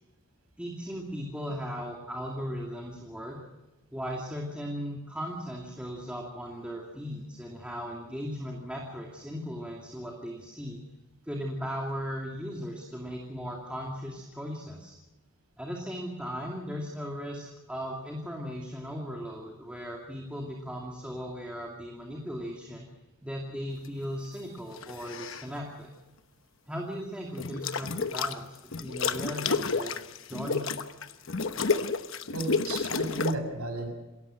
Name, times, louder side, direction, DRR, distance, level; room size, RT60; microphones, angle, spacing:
voice 1, 0.6-3.4 3.9-10.8 11.2-14.9 15.6-22.9 23.2-25.9 26.7-28.5 28.7-30.0 30.3-30.7, equal, 5° right, -1 dB, 2.5 m, -37 dB
sound 1, 24.8-25.5 27.4-28.4 28.7-33.4, left 4 dB, 60° left, 1.0 m, -30 dB
voice 2, 32.3-33.9, right 2 dB, 85° right, 4 dB, 6.5 m, -34 dB
27.5 x 14.0 x 7.7 m, 1.0 s
head